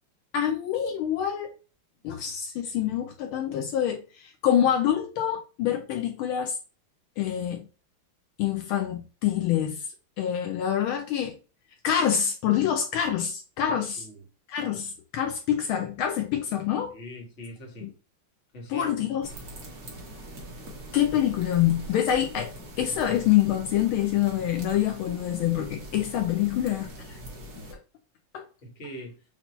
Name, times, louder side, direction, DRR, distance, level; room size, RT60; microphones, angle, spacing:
voice 1, 0.3-1.6 2.0-6.6 7.2-7.6 8.4-9.9 10.2-11.4 11.8-14.0 14.5-16.9 17.8-17.9 18.7-19.3 20.9-26.9 27.6-27.8 28.3-28.5, left 10 dB, 75° left, 1.4 m, -26 dB
voice 2, 13.7-14.2 16.9-17.9 18.5-18.9 26.8-27.0 28.6-29.2, equal, 35° left, 1.6 m, -42 dB
sound 1, 19.2-27.7, right 1 dB, 50° right, 1.7 m, -42 dB
5.8 x 2.8 x 3.0 m
omnidirectional pair, 2.4 m